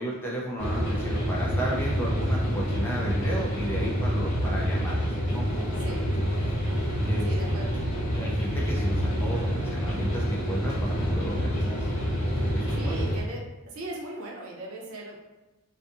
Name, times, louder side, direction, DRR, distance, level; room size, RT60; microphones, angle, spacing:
voice 1, 0.0-5.8 7.0-7.3 8.1-11.9 12.5-13.1, right 1 dB, 10° left, -4 dB, 0.3 m, -34 dB
sound 1, 0.6-13.2, equal, 60° left, 1.0 m, -27 dB
voice 2, 7.2-7.8 12.7-15.4, right 1 dB, 80° right, -2 dB, 0.6 m, -38 dB
2.5 x 2.5 x 2.4 m, 1.1 s
head